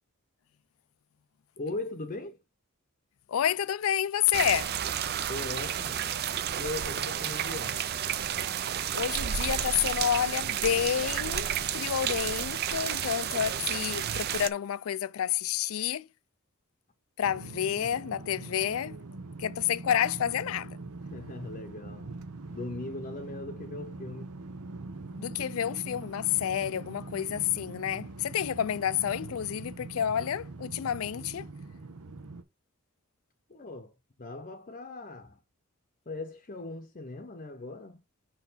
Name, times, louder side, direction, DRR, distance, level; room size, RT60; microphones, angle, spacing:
voice 1, 1.6-2.4 5.3-6.0 6.6-7.8 13.3-13.4 21.0-22.2 22.5-24.3 33.5-35.4 36.1-38.0, left 2 dB, 35° left, 0.7 m, -39 dB
voice 2, 3.3-4.7 8.9-16.1 17.2-19.0 19.4-20.8 25.2-31.5, left 9 dB, 70° left, 0.4 m, -29 dB
sound 1, 4.3-14.5, right 9 dB, 45° right, 0.4 m, -31 dB
sound 2, 17.2-32.4, right 3 dB, 90° right, 0.8 m, -43 dB
5.9 x 4.4 x 4.0 m
head